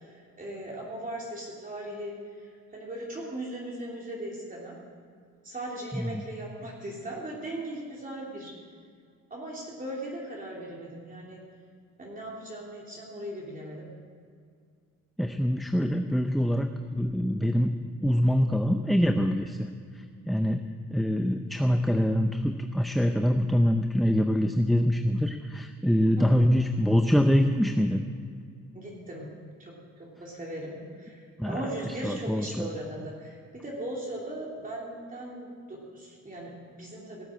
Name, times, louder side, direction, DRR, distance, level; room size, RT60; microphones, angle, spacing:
voice 1, 0.0-4.8 5.4-8.5 9.3-11.4 12.0-13.9 26.2-26.4 28.7-29.3 29.6-37.2, right 1 dB, 25° right, -4 dB, 3.1 m, -38 dB
voice 2, 15.2-17.7 18.0-19.7 20.3-28.0 31.4-31.6 32.0-32.7, equal, ahead, 6 dB, 0.6 m, -24 dB
17.5 x 7.3 x 7.7 m, 2.1 s
cardioid pair, 90°, 30 cm